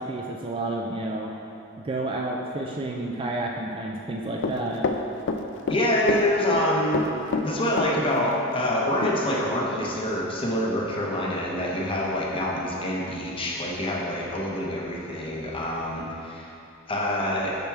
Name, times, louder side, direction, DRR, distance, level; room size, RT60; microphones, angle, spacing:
voice 1, 0.0-1.3 1.8-4.9, right 2 dB, 25° right, 0 dB, 0.3 m, -30 dB
Run, 4.4-5.8 6.1-6.6 6.9-8.3 8.6-8.7 9.0-9.1, left 4 dB, 55° left, 0.4 m, -27 dB
voice 2, 5.7-7.0 7.4-16.5 16.9-17.5, left 1 dB, 25° left, -3 dB, 0.8 m, -26 dB
6.8 x 5.9 x 3.2 m, 2.6 s
head